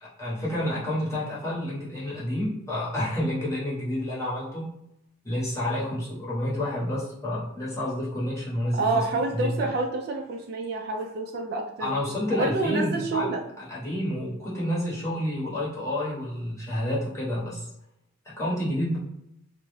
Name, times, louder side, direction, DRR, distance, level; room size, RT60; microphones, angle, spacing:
voice 1, 0.0-4.7 5.2-9.0 9.3-9.7 11.8-13.3 13.6-17.7 18.2-19.0, left 1 dB, 15° left, -7 dB, 0.8 m, -29 dB
voice 2, 8.7-11.9 12.3-13.4, right 3 dB, 50° right, 1 dB, 0.3 m, -28 dB
2.3 x 2.0 x 3.0 m, 0.82 s
head